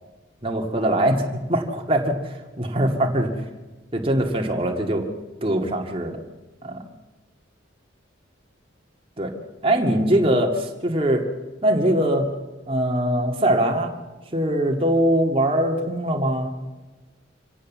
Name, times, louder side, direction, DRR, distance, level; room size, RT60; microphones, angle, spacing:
voice 1, 0.4-3.3 3.9-5.1 5.4-6.2 6.6-6.8 9.2-9.3 9.6-11.3 11.6-12.3 12.7-13.9 14.3-16.5, right 1 dB, 30° right, 2 dB, 2.1 m, -22 dB
25.5 x 16.5 x 7.4 m, 1.2 s
head